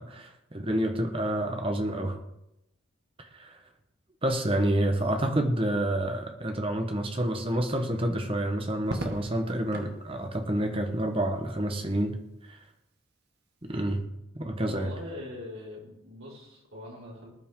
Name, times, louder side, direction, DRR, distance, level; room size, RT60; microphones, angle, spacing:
voice 1, 0.0-2.2 3.3-3.6 4.2-12.2 12.5-12.6 13.6-14.0 14.3-14.9, right 1 dB, 25° right, 5 dB, 1.1 m, -28 dB
Crackle, 8.8-10.0 11.6-12.1, right 1 dB, 50° right, 1.7 m, -38 dB
voice 2, 14.5-17.3, left 1 dB, 75° right, -5 dB, 5.0 m, -42 dB
19.5 x 10.0 x 3.7 m, 0.86 s
head